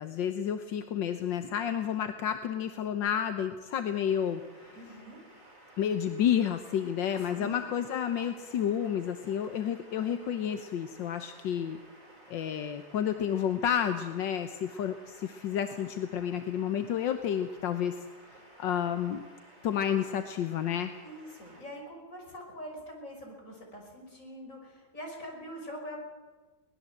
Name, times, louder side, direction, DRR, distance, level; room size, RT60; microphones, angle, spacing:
voice 1, 0.0-4.8 5.8-11.8 12.3-18.0 18.6-19.2 19.6-20.9, left 9 dB, 80° left, 8 dB, 1.7 m, -30 dB
sound 1, 4.1-21.6, right 1 dB, 70° right, 5.2 m, -55 dB
voice 2, 4.7-5.2 7.2-7.6 21.0-26.0, equal, 45° left, 1 dB, 6.0 m, -44 dB
sound 2, 6.7-11.1, equal, 40° right, 7.3 m, -59 dB
22.5 x 19.5 x 7.8 m, 1.3 s
omnidirectional pair, 2.0 m